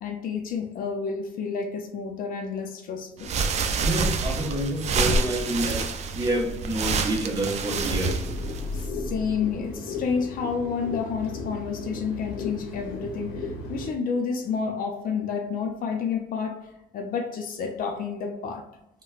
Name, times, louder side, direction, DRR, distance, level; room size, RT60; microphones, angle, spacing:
voice 1, 0.0-3.3 8.7-16.7 16.9-18.7, left 6 dB, 55° left, 4 dB, 0.5 m, -30 dB
sound 1, 3.2-8.9, right 4 dB, 40° right, 0.4 m, -27 dB
voice 2, 3.8-5.8 6.1-8.1, right 1 dB, 25° right, -2 dB, 1.0 m, -28 dB
sound 2, 8.0-13.9, left 2 dB, 85° left, 0.8 m, -34 dB
4.0 x 2.2 x 2.3 m, 0.90 s
cardioid pair, 110°, 17 cm